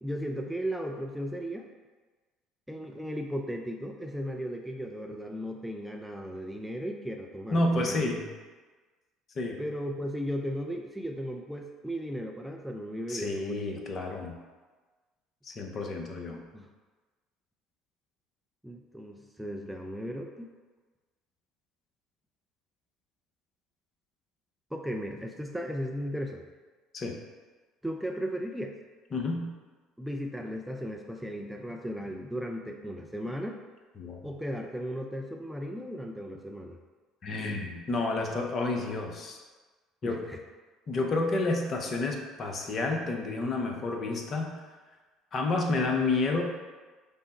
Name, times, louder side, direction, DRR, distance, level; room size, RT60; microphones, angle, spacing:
voice 1, 0.0-1.7 2.7-8.0 9.6-13.7 16.5-16.7 18.6-20.5 24.7-26.4 27.8-28.8 30.0-33.6 34.2-36.8 40.0-40.4, equal, 5° right, 2 dB, 0.4 m, -36 dB
voice 2, 7.5-8.3 9.4-9.6 13.1-14.4 15.4-16.4 26.9-27.2 29.1-29.5 34.0-34.2 37.2-39.4 40.0-40.2 40.9-44.5 45.3-46.4, left 2 dB, 40° left, 2 dB, 0.7 m, -30 dB
5.4 x 2.0 x 4.1 m, 1.3 s
figure-of-eight pair, 60°, 0 cm